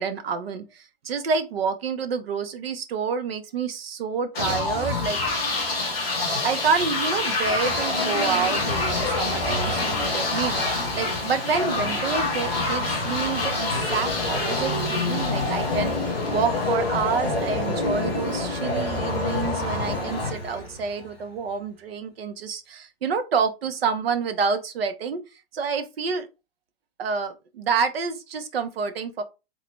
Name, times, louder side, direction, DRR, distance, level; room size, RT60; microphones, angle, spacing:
voice 1, 0.0-5.2 6.4-25.2 25.5-26.3 27.0-29.2, right 5 dB, 80° right, 1.0 m, -28 dB
sound 1, 4.3-21.1, left 2 dB, 5° left, 0.3 m, -26 dB
3.8 x 3.0 x 3.3 m
hypercardioid pair, 180°, 30 cm